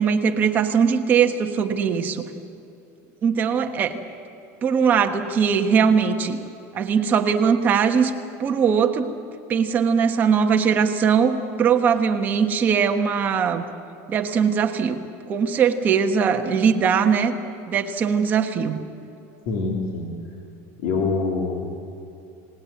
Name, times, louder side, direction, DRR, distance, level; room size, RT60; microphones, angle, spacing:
voice 1, 0.0-2.2 3.2-4.0 4.6-6.4 6.7-8.1 8.4-9.1 9.5-13.6 14.1-15.0 15.3-17.3 17.7-18.8, right 6 dB, 25° right, 5 dB, 1.3 m, -20 dB
voice 2, 19.4-20.1 20.8-21.7, left 4 dB, 60° left, 0 dB, 3.4 m, -25 dB
29.0 x 19.5 x 8.6 m, 2.7 s
cardioid pair, 180°, 8 cm